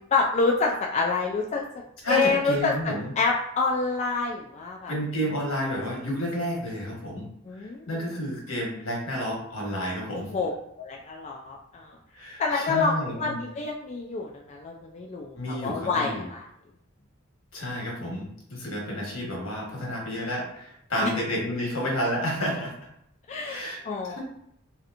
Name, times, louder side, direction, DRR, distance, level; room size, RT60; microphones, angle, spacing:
voice 1, 0.1-1.6 2.1-2.7 3.2-4.9 7.5-8.0 10.1-10.5 10.8-11.9 12.4-16.4 21.0-21.1 23.3-24.2, left 4 dB, 35° left, 0 dB, 0.3 m, -27 dB
voice 2, 2.0-3.1 4.9-7.3 7.9-10.3 12.1-13.4 15.3-16.2 17.5-22.7 23.4-24.2, equal, 80° left, -2 dB, 1.2 m, -30 dB
3.1 x 2.8 x 2.5 m, 0.74 s
head